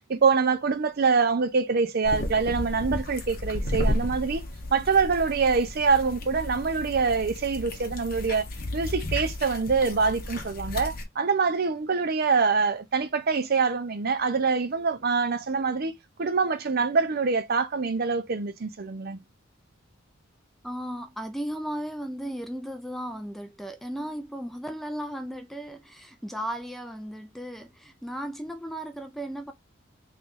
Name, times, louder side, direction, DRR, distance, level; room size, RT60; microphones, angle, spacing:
voice 1, 0.1-4.4 4.7-8.5 8.7-15.9 16.2-19.2, right 5 dB, 50° right, 0.6 m, -25 dB
sound 1, 2.0-11.0, left 1 dB, 50° left, 0.9 m, -33 dB
voice 2, 20.6-29.5, equal, ahead, 0.4 m, -35 dB
3.3 x 3.0 x 3.7 m
head